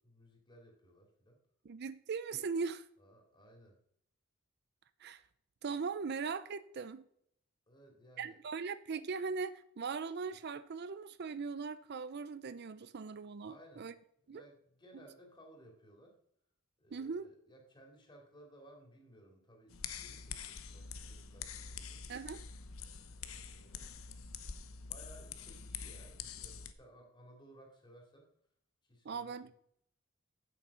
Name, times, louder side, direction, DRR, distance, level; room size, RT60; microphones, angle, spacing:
voice 1, 0.0-1.4 3.0-3.8 7.7-8.6 13.4-13.9 14.3-16.2 16.8-22.0 23.2-23.9 24.9-28.3 28.8-29.5, equal, 25° left, 2.9 m, -59 dB
voice 2, 1.6-2.9 5.0-5.2 5.6-7.0 8.2-13.9 14.3-14.4 16.9-17.3 22.1-22.4 29.0-29.5, right 5 dB, 50° right, 0.5 m, -39 dB
sound 1, 19.7-26.7, left 6 dB, 90° left, 0.9 m, -46 dB
8.8 x 7.8 x 5.5 m
head